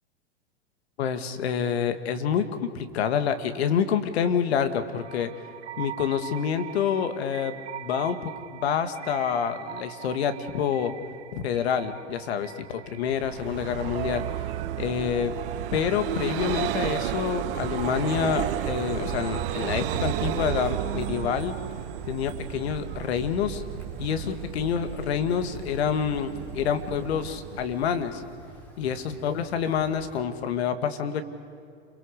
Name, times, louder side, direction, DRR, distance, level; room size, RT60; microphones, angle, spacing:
voice 1, 1.0-5.3 5.8-10.9 11.3-14.2 14.8-15.3 15.7-21.6 22.1-23.6 24.0-28.2 28.8-31.2, left 8 dB, 70° left, 9 dB, 2.1 m, -27 dB
sound 1, 4.9-21.2, right 10 dB, 85° right, 1.0 m, -39 dB
Vehicle, 13.1-28.5, right 12 dB, 55° right, 1.3 m, -33 dB
Wind, 17.4-30.2, equal, 5° left, 4.1 m, -47 dB
29.5 x 23.5 x 6.7 m, 2.4 s
hypercardioid pair, 115°, 33 cm